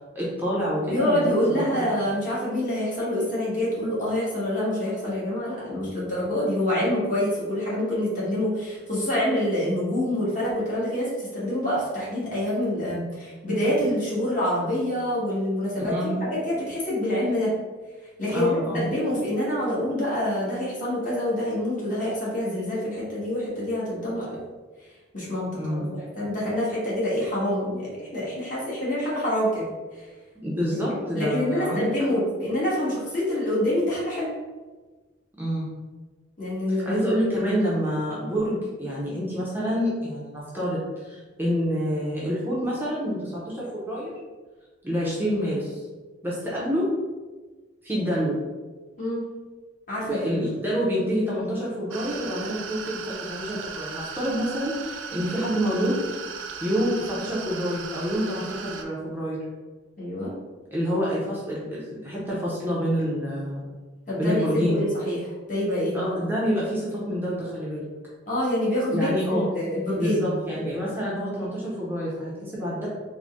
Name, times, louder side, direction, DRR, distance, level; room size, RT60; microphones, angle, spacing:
voice 1, 0.1-1.9 15.9-16.2 18.3-18.9 25.5-25.9 30.4-31.9 35.4-35.7 36.8-44.1 44.8-45.8 46.2-46.9 47.8-48.4 50.0-56.0 56.6-59.4 60.7-63.6 64.2-64.9 65.9-67.8 68.9-69.5 70.0-72.9, equal, 10° right, -7 dB, 0.6 m, -27 dB
voice 2, 0.9-17.6 18.2-24.4 25.1-25.8 26.2-29.6 29.9-30.1 31.1-34.3 36.4-37.0 49.0-49.3 49.9-50.4 60.0-60.4 64.1-65.2 65.5-66.0 68.3-70.3, left 1 dB, 45° left, -7 dB, 1.4 m, -26 dB
sound 1, 51.9-58.8, right 6 dB, 80° right, 0.4 m, -37 dB
3.8 x 2.2 x 3.5 m, 1.3 s
head